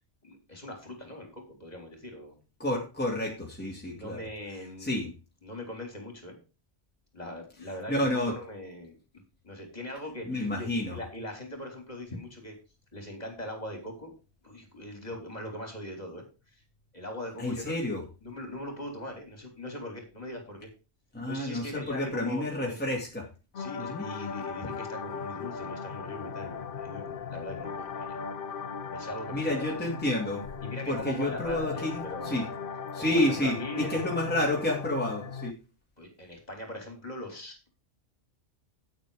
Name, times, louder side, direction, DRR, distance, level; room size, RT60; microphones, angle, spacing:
voice 1, 0.2-2.3 3.9-5.1 5.4-6.4 7.1-9.0 9.4-12.6 12.9-14.1 14.4-16.6 16.9-17.9 18.2-20.7 21.3-22.8 23.6-28.1 28.9-29.8 30.6-32.4 33.0-34.0 36.0-37.7, left 1 dB, 35° left, 3 dB, 3.8 m, -41 dB
voice 2, 2.6-4.2 4.8-5.1 7.9-8.3 10.3-11.0 17.4-18.0 21.1-23.3 23.8-24.0 29.3-30.4 30.9-32.4 32.9-35.6, left 1 dB, 10° left, -2 dB, 2.5 m, -30 dB
sound 1, 23.5-35.5, left 6 dB, 55° left, 0.9 m, -38 dB
9.3 x 8.9 x 5.0 m, 0.31 s
omnidirectional pair, 1.2 m